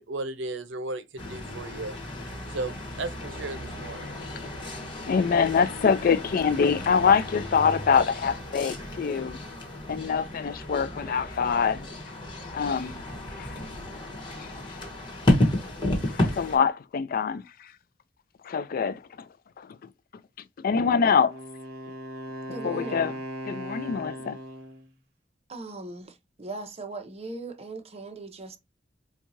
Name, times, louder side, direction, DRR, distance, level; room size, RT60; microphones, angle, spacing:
voice 1, 0.0-1.9 2.5-4.1, right 2 dB, 85° right, 0.7 m, -35 dB
sound 1, 1.2-16.6, left 1 dB, 25° left, 1.2 m, -32 dB
voice 2, 5.1-9.4 9.9-11.9 12.5-13.0 13.4-13.5 14.4-14.5 16.0-17.4 18.4-19.0 19.6-19.7 20.6-21.3 22.6-23.1 23.5-24.4, left 6 dB, 50° left, 0.3 m, -24 dB
Wind instrument woodwind instrument, 21.1-24.9, equal, 55° right, 1.3 m, -38 dB
voice 3, 22.5-23.1 25.5-28.6, right 2 dB, 35° right, 0.8 m, -39 dB
4.5 x 2.3 x 2.6 m
head